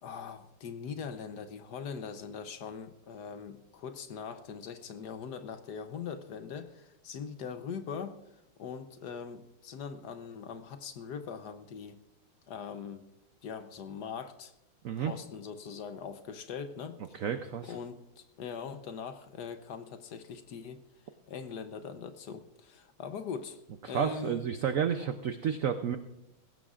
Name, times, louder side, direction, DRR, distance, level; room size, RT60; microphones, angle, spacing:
voice 1, 0.0-8.2 8.6-12.0 12.5-13.1 13.4-14.5 15.0-17.2 17.7-20.8 21.3-23.6 23.9-24.4, left 6 dB, 65° left, 9 dB, 1.2 m, -41 dB
voice 2, 17.1-17.8 23.8-26.0, right 8 dB, 80° right, 8 dB, 0.7 m, -31 dB
20.0 x 16.5 x 2.5 m, 0.87 s
omnidirectional pair, 2.2 m